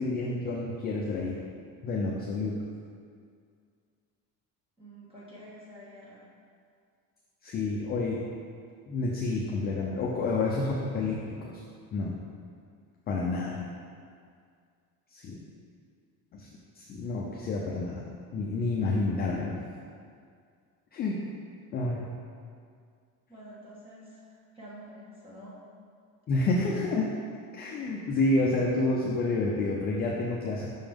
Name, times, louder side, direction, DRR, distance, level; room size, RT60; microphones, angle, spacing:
voice 1, 0.0-1.4 1.8-2.6 7.4-8.2 8.9-11.6 11.9-12.2 13.1-13.6 15.1-15.4 16.3-16.5 16.8-19.6 20.9-21.2 21.7-22.1 26.3-27.1 27.5-30.7, left 2 dB, 25° left, -3 dB, 0.4 m, -29 dB
voice 2, 4.8-6.3 23.3-25.6, equal, 15° right, -8 dB, 1.4 m, -48 dB
5.8 x 5.3 x 3.5 m, 2.2 s
cardioid pair, 170°, 36 cm